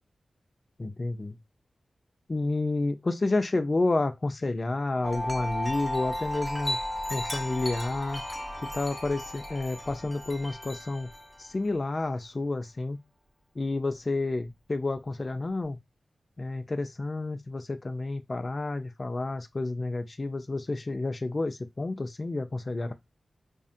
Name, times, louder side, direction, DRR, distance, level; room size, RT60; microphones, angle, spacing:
voice 1, 0.8-1.4 2.3-6.8 7.1-8.2 8.6-11.1 11.4-13.0 13.6-15.8 16.4-22.9, left 2 dB, 45° left, 0.3 m, -30 dB
Wind chime, 5.0-11.5, left 1 dB, 10° left, 1.0 m, -35 dB
2.5 x 2.1 x 2.5 m
cardioid pair, 45°, 0 cm